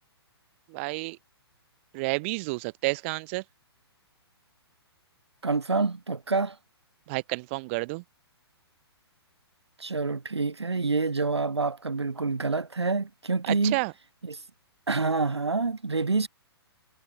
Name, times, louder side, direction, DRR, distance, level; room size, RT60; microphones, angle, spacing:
voice 1, 0.7-1.2 1.9-3.4 7.1-8.0 13.5-13.9, right 26 dB, 30° right, 0.7 m, -30 dB
voice 2, 5.4-6.6 9.8-13.8 14.2-14.4 14.9-16.3, right 3 dB, 85° right, 0.6 m, -27 dB
figure-of-eight pair, 120°, 14 cm